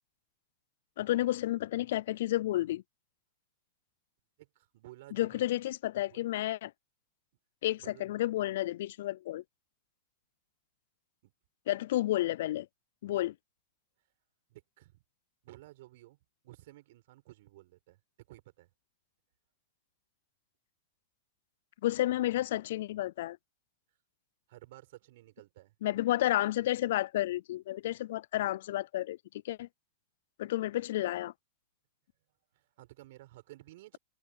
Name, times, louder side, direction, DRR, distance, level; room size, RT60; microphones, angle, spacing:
voice 1, 1.0-2.8 5.1-6.7 7.6-9.4 11.7-12.7 13.0-13.3 21.8-23.4 25.8-29.2 29.4-29.7 30.4-31.3, left 15 dB, 70° left, 0.3 m, -31 dB
voice 2, 4.4-5.6 6.1-6.3 7.8-8.1 11.2-11.3 14.5-15.0 15.4-16.2 16.4-18.0 18.3-18.7 24.5-25.7 32.5-34.0, right 17 dB, 65° right, 5.7 m, -54 dB
hypercardioid pair, 120°, 0 cm